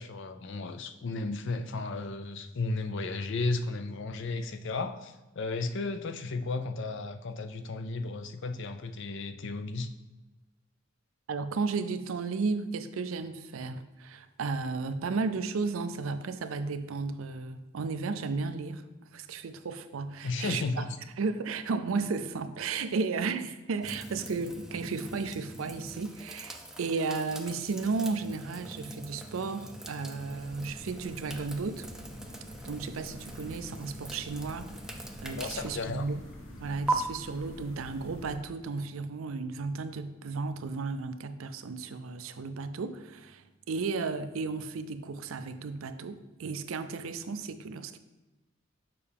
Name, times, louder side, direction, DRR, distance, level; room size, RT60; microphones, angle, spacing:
voice 1, 0.0-9.9 20.2-20.9 35.4-36.0, left 3 dB, 65° left, 8 dB, 0.5 m, -34 dB
voice 2, 11.3-18.8 19.1-20.9 21.2-31.9 32.6-36.2 36.6-48.0, right 4 dB, 85° right, 10 dB, 0.5 m, -34 dB
sound 1, 23.8-36.9, right 2 dB, 5° right, 0.5 m, -41 dB
sound 2, 30.2-38.4, equal, 85° left, 1.6 m, -48 dB
6.8 x 5.5 x 3.5 m, 1.1 s
head